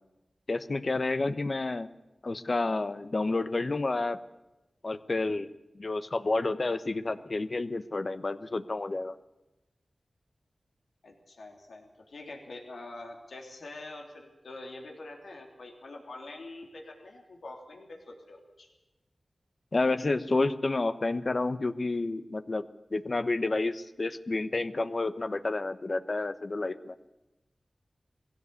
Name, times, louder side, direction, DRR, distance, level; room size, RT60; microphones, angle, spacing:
voice 1, 0.5-1.9 2.2-4.2 4.8-5.5 5.7-9.1 19.7-22.6 22.9-26.9, left 3 dB, 50° left, 12 dB, 1.0 m, -30 dB
voice 2, 11.0-18.7, left 2 dB, 85° left, 1 dB, 3.3 m, -45 dB
20.5 x 16.0 x 8.3 m, 1.0 s
cardioid pair, 55°, 0 cm